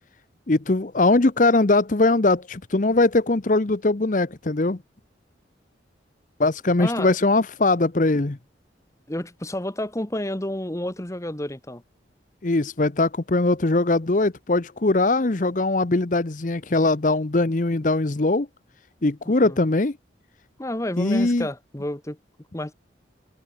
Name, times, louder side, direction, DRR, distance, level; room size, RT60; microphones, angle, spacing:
voice 1, 0.5-4.8 6.4-8.4 12.4-18.5 19.0-20.0 21.0-21.5, left 2 dB, 45° left, 0.8 m, -21 dB
voice 2, 6.8-7.1 9.1-11.8 19.4-19.6 20.6-22.2 22.5-22.7, left 1 dB, 15° left, 1.1 m, -30 dB
open air
head